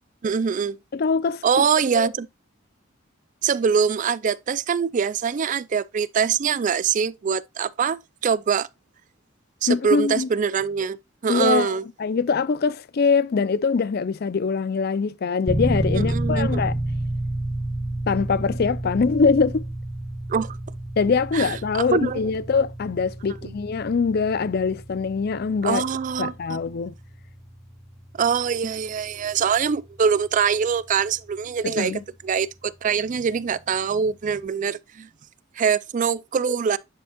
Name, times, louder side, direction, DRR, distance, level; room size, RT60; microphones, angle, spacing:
voice 1, 0.2-0.8 1.4-2.3 3.4-8.7 9.6-11.8 15.9-16.6 20.3-20.6 21.3-22.2 23.4-23.5 25.6-26.6 28.1-35.1 35.6-36.8, right 6 dB, 40° right, 0.3 m, -24 dB
voice 2, 0.9-1.4 1.9-2.1 9.7-10.3 11.3-16.7 18.1-19.7 21.0-25.8 26.2-26.9 31.6-32.0, left 5 dB, 50° left, 0.4 m, -23 dB
sound 1, 15.5-32.2, right 1 dB, ahead, 0.6 m, -31 dB
9.9 x 5.2 x 2.3 m
head